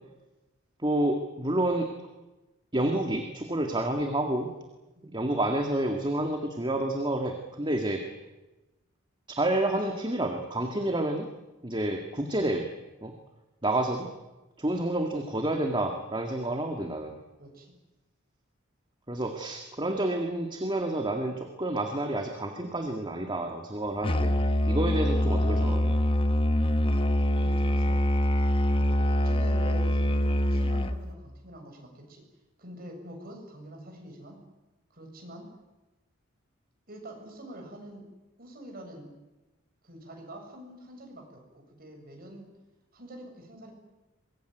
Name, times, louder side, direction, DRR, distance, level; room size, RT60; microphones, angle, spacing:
voice 1, 0.8-1.9 2.7-4.5 5.1-8.0 9.3-11.3 11.6-12.7 13.0-13.1 13.6-14.1 14.6-17.2 19.1-25.9, right 1 dB, 20° right, 4 dB, 2.0 m, -29 dB
voice 2, 17.4-17.7 27.4-28.0 28.7-32.2 32.6-34.4 34.9-35.5 36.9-38.1 38.4-39.1 39.8-42.5 42.9-43.7, right 1 dB, 45° right, 2 dB, 7.4 m, -45 dB
Musical instrument, 24.0-31.1, left 1 dB, 25° left, 1.1 m, -24 dB
24.0 x 21.5 x 9.3 m, 1.1 s
head